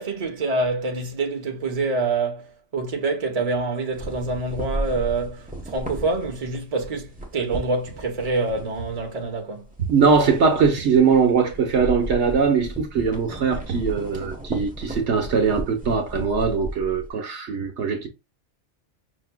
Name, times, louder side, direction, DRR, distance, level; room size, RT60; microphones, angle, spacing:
voice 1, 0.0-9.7, right 3 dB, 35° right, 1.0 m, -26 dB
sound 1, 3.9-9.4 9.7-17.1, right 1 dB, 10° right, 0.9 m, -35 dB
voice 2, 9.9-18.1, right 5 dB, 70° right, 1.1 m, -21 dB
5.6 x 3.0 x 2.2 m
omnidirectional pair, 1.2 m